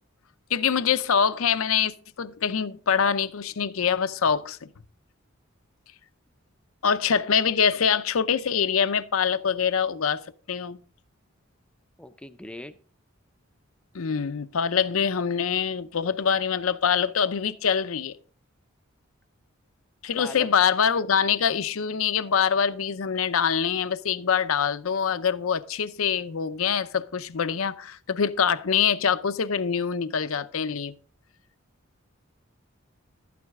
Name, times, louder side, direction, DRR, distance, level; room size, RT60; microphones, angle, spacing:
voice 1, 0.5-4.6 6.8-10.2 10.5-10.8 13.9-18.1 20.0-30.9, left 7 dB, 85° left, 0.6 m, -24 dB
voice 2, 12.0-12.7 20.2-20.5, left 1 dB, 5° left, 0.5 m, -39 dB
12.5 x 9.5 x 3.6 m
head